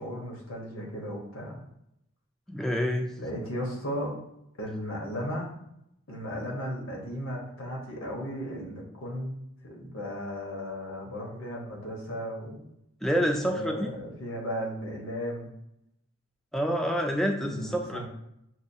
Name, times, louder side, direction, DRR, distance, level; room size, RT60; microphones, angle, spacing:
voice 1, 0.0-1.6 3.2-4.2 4.6-5.5 6.1-9.3 9.6-12.7 13.3-15.5 17.4-18.1, equal, 80° left, -1 dB, 1.1 m, -35 dB
voice 2, 2.5-3.1 13.0-13.9 16.5-18.1, equal, ahead, 2 dB, 0.3 m, -27 dB
6.0 x 2.3 x 2.7 m, 0.80 s
head